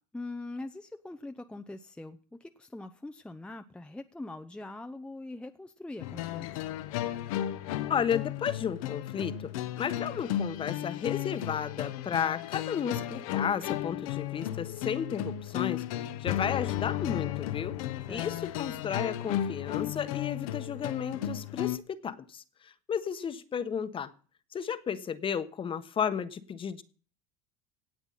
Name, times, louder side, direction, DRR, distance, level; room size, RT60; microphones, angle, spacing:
voice 1, 0.1-6.5 18.1-18.4, left 2 dB, 5° left, 7 dB, 0.7 m, -42 dB
sound 1, 6.0-21.8, left 12 dB, 80° left, 1.1 m, -34 dB
voice 2, 7.9-9.5 9.8-17.8 18.1-24.1 24.5-26.8, left 7 dB, 30° left, 13 dB, 1.2 m, -33 dB
17.0 x 8.0 x 5.7 m, 0.41 s
supercardioid pair, 105°, 18 cm